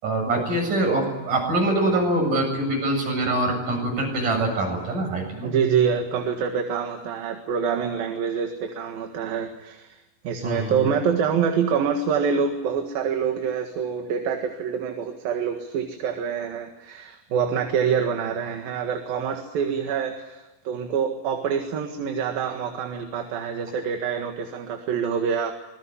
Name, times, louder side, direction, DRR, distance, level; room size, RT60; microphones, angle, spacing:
voice 1, 0.0-5.5 10.4-10.9, right 2 dB, 60° right, 2 dB, 9.2 m, -24 dB
voice 2, 5.4-10.0 10.3-25.5, right 7 dB, 80° right, 4 dB, 3.6 m, -26 dB
26.0 x 21.5 x 9.9 m, 1.0 s
omnidirectional pair, 4.1 m